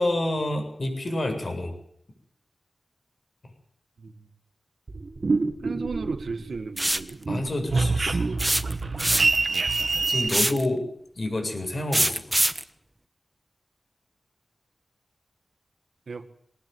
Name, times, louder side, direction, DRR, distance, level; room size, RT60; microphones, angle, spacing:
voice 1, 0.0-1.7 7.3-8.2 10.1-10.9 11.2-12.4, left 1 dB, 50° left, 4 dB, 7.6 m, -28 dB
voice 2, 4.0-4.3 5.6-7.2 16.1-16.3, right 4 dB, 75° right, 10 dB, 1.8 m, -35 dB
sound 1, 4.9-6.6 6.9-10.3, right 3 dB, 55° right, 2.2 m, -26 dB
sound 2, 6.8-7.1 8.4-9.5 10.3-10.7 11.9-12.6, right 1 dB, 15° right, 1.2 m, -23 dB
21.5 x 19.0 x 9.5 m, 0.69 s
wide cardioid pair, 95°, 0 cm